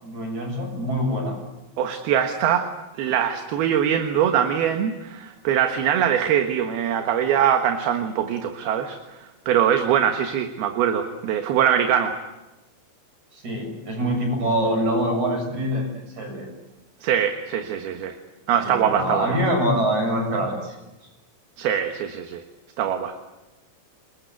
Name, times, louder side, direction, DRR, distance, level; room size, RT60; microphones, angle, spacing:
voice 1, 0.0-1.4 13.3-15.9 16.2-16.5 18.6-20.8, equal, 40° right, 2 dB, 8.6 m, -24 dB
voice 2, 1.8-2.7 3.0-9.0 9.5-12.2 17.0-18.1 18.5-19.4 21.6-22.4 22.8-23.1, right 9 dB, 65° right, 6 dB, 3.1 m, -22 dB
29.5 x 21.0 x 8.3 m, 1.0 s
omnidirectional pair, 5.1 m